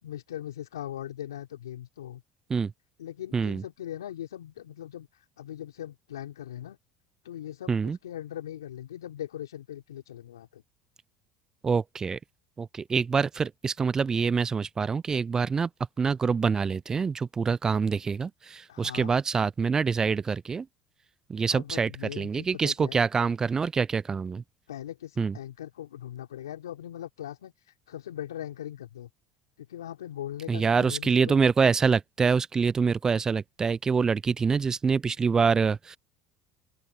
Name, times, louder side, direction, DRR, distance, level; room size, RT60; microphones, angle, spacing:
voice 1, 0.0-2.2 3.0-5.1 5.4-6.8 7.2-10.6 18.7-19.1 21.5-23.0 24.7-27.5 27.9-29.1 29.6-31.4, left 11 dB, 85° left, 3.4 m, -40 dB
voice 2, 3.3-3.6 7.7-8.0 11.6-12.2 12.6-15.7 16.0-20.7 21.3-21.9 22.2-24.4 25.2-25.3 30.5-36.0, right 5 dB, 25° right, 0.5 m, -25 dB
open air
hypercardioid pair, 70°, 2 cm